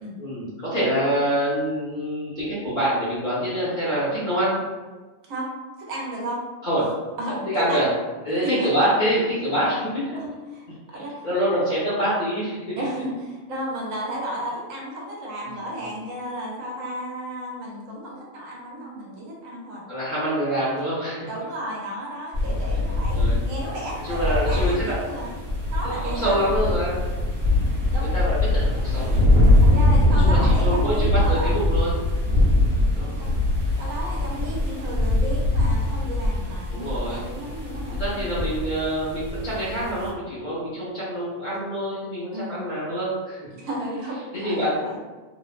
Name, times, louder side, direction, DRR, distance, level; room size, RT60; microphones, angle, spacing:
voice 1, 0.2-4.6 6.6-6.9 7.5-7.9 8.2-10.2 10.7-12.8 15.4-15.7 19.9-21.3 23.1-23.4 24.0-25.3 25.8-27.0 28.1-29.2 30.2-32.0 32.9-33.2 34.5-34.7 36.7-37.3 37.9-43.4 44.3-45.0, equal, 40° left, -9 dB, 0.8 m, -26 dB
voice 2, 5.8-6.4 7.2-7.9 8.3-8.7 10.2-11.3 12.8-19.8 21.3-25.3 25.7-26.8 27.9-28.1 29.6-31.6 33.2-33.3 33.8-38.3 42.3-42.6 43.5-45.0, right 1 dB, 75° right, -3 dB, 1.0 m, -33 dB
sound 1, 22.3-40.1, left 1 dB, 40° right, 0.9 m, -22 dB
2.8 x 2.0 x 2.4 m, 1.3 s
omnidirectional pair, 1.4 m